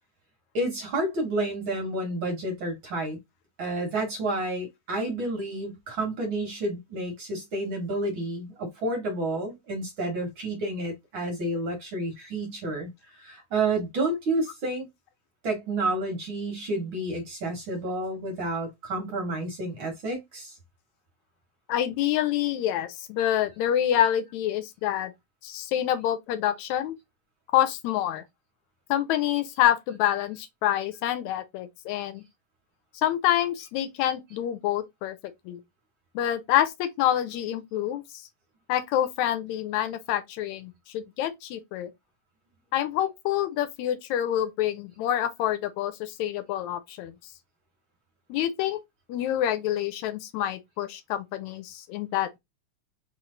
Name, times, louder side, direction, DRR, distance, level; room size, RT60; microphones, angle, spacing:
voice 1, 0.5-3.2 3.6-14.9 15.4-20.6, right 2 dB, 55° right, 1.7 m, -30 dB
voice 2, 21.7-25.1 25.4-26.9 27.5-28.2 28.9-32.2 32.9-35.2 35.5-35.6 36.2-38.0 38.7-41.9 42.7-47.3 48.3-48.8 49.1-52.4, left 11 dB, 80° left, 1.9 m, -27 dB
4.3 x 3.2 x 3.7 m
omnidirectional pair, 3.3 m